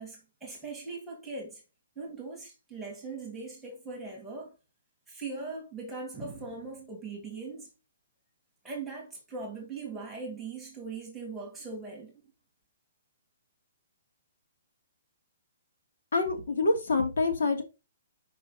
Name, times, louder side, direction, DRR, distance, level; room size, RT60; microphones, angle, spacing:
voice 1, 0.0-1.6 2.0-4.5 5.1-7.7 8.6-12.2, right 3 dB, ahead, 1.8 m, -40 dB
voice 2, 16.1-17.6, left 3 dB, 75° left, 2.6 m, -26 dB
5.7 x 5.2 x 5.5 m
hypercardioid pair, 180°, 0 cm